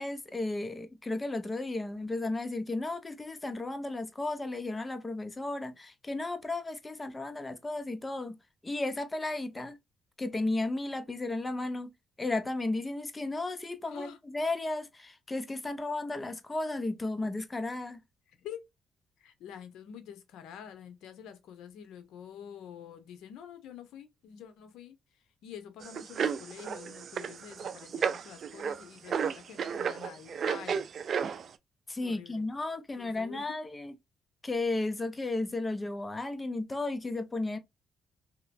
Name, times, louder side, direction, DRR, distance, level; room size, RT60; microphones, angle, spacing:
voice 1, 0.0-8.4 8.6-9.8 10.2-11.9 12.2-18.0 31.9-33.9 34.4-37.6, left 2 dB, 20° left, 0.6 m, -34 dB
voice 2, 13.8-14.2 18.4-18.7 19.2-25.0 25.4-30.9 32.0-32.5 33.0-33.6, left 9 dB, 85° left, 0.7 m, -47 dB
sound 1, 25.8-31.5, right 7 dB, 55° right, 0.4 m, -33 dB
2.9 x 2.9 x 2.5 m
cardioid pair, 90°, 0 cm